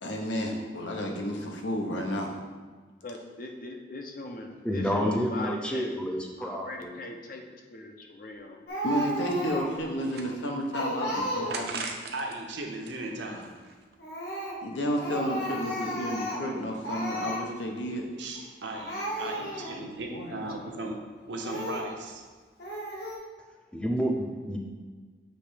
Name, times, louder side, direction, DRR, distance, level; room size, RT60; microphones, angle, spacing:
voice 1, 0.0-2.3 8.8-11.9 14.6-18.0, equal, 80° left, 1 dB, 1.0 m, -31 dB
voice 2, 3.0-5.9 6.4-7.4 7.7-8.6 19.4-20.9, left 2 dB, 50° left, 2 dB, 0.7 m, -41 dB
voice 3, 4.6-7.0 23.7-24.6, equal, 5° left, 1 dB, 0.5 m, -29 dB
sound 1, 8.3-8.4 8.8-8.9 9.4-10.8 11.5-12.4 12.7-13.9, right 4 dB, 55° right, 0.6 m, -39 dB
Speech, 8.7-9.8 10.2-10.3 10.7-11.8 14.0-14.6 15.0-16.5 16.8-17.4 18.3-18.5 18.7-19.8 20.4-20.5 21.4-21.9 22.6-23.2, equal, 65° left, 1.3 m, -34 dB
voice 4, 12.1-13.5 18.2-20.9 21.3-22.2, right 2 dB, 75° right, 1 dB, 0.9 m, -37 dB
6.7 x 3.2 x 5.0 m, 1.4 s
head